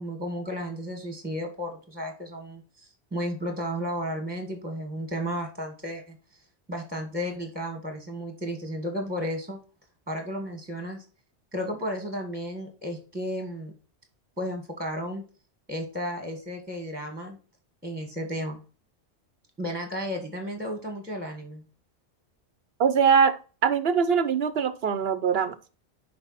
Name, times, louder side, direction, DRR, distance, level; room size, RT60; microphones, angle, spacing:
voice 1, 0.0-6.2 6.7-9.6 10.1-11.0 11.5-13.7 14.4-15.2 15.7-17.4 17.8-18.6 19.6-21.6, equal, 10° right, 1.6 m, -33 dB
voice 2, 22.8-25.6, right 6 dB, 60° right, 1.0 m, -22 dB
7.1 x 5.2 x 4.1 m
omnidirectional pair, 1.2 m